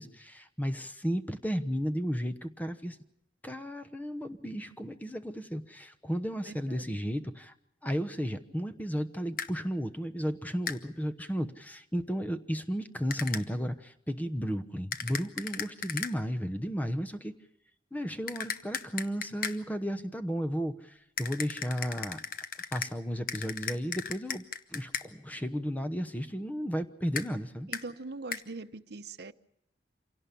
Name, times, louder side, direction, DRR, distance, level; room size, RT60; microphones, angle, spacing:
voice 1, 0.0-3.0 3.4-7.5 7.8-17.3 17.9-22.2 22.7-24.4 24.7-27.7, equal, 10° left, 10 dB, 1.0 m, -34 dB
voice 2, 6.4-7.0 27.7-29.3, right 3 dB, 65° right, 10 dB, 0.9 m, -42 dB
sound 1, 9.4-9.5 10.7-10.8 13.1-13.4 14.9-16.1 18.3-19.6 21.2-22.9 23.3-25.1 27.1-27.3 27.7-27.8 28.3-28.4, left 7 dB, 55° left, 1.1 m, -36 dB
26.5 x 17.5 x 6.9 m, 0.84 s
head